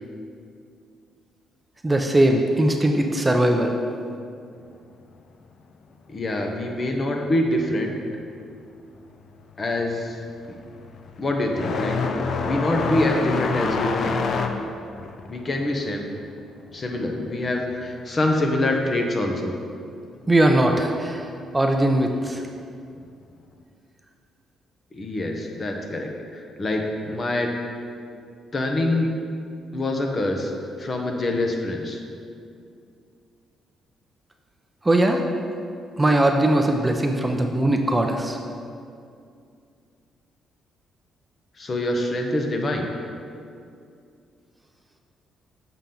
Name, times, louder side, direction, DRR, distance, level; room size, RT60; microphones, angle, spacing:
voice 1, 1.8-3.8 20.3-21.3 21.5-22.4 34.8-35.2 36.0-38.4, right 1 dB, 15° right, 3 dB, 0.5 m, -20 dB
voice 2, 6.1-7.9 9.6-10.2 10.5-10.6 11.2-14.3 15.3-16.1 16.7-19.5 24.9-27.5 28.5-29.1 29.7-30.5 30.8-32.0 41.6-42.9, left 1 dB, 35° left, 2 dB, 0.9 m, -25 dB
sound 1, 9.0-9.3 9.6-17.9 18.2-19.2 20.2-20.3 21.1-21.2 23.0-23.1, left 4 dB, 60° left, 0.5 m, -28 dB
7.0 x 5.7 x 3.8 m, 2.4 s
cardioid pair, 90°, 0 cm